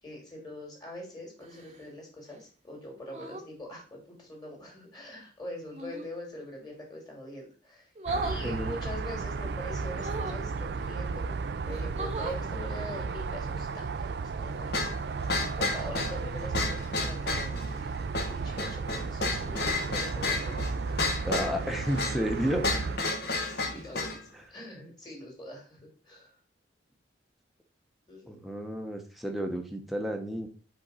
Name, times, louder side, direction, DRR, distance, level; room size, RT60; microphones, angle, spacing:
voice 1, 0.0-7.9 8.2-11.3 11.7-14.7 15.6-20.7 22.7-22.9 23.6-26.4 28.1-28.4, left 1 dB, 20° left, -1 dB, 2.5 m, -43 dB
sound 1, 1.4-1.9 3.1-3.5 5.7-6.1 8.0-8.4 9.9-10.4 11.2-11.3 11.7-12.4 14.1-14.3, right 2 dB, 35° right, 0.9 m, -36 dB
sound 2, 8.0-23.0, right 4 dB, 60° right, 0.4 m, -34 dB
sound 3, 14.7-24.2, left 3 dB, 60° left, 1.2 m, -32 dB
voice 2, 21.2-22.7 28.2-30.5, equal, ahead, 2 dB, 0.9 m, -31 dB
5.4 x 3.8 x 5.5 m, 0.37 s
head